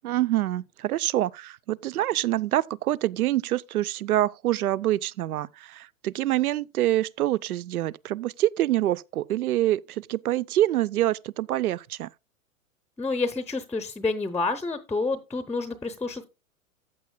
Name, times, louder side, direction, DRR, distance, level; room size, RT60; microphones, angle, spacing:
voice 1, 0.0-12.1, right 14 dB, 90° right, 0.5 m, -26 dB
voice 2, 13.0-16.2, left 3 dB, 5° left, 0.6 m, -29 dB
14.5 x 8.6 x 2.2 m
hypercardioid pair, 120°, 42 cm